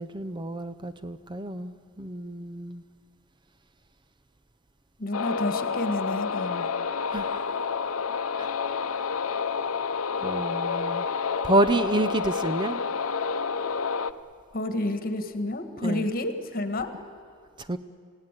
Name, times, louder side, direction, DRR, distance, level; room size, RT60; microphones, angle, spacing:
voice 1, 0.0-2.8 7.1-7.4 8.4-8.5 10.2-11.1 11.4-12.8 15.8-16.1 17.6-17.8, right 1 dB, 20° right, 11 dB, 0.6 m, -28 dB
voice 2, 5.0-6.7 14.5-16.9, left 1 dB, 45° left, 8 dB, 1.8 m, -30 dB
sound 1, 5.1-14.1, left 5 dB, 85° left, 0.8 m, -29 dB
27.5 x 17.0 x 9.2 m, 2.2 s
head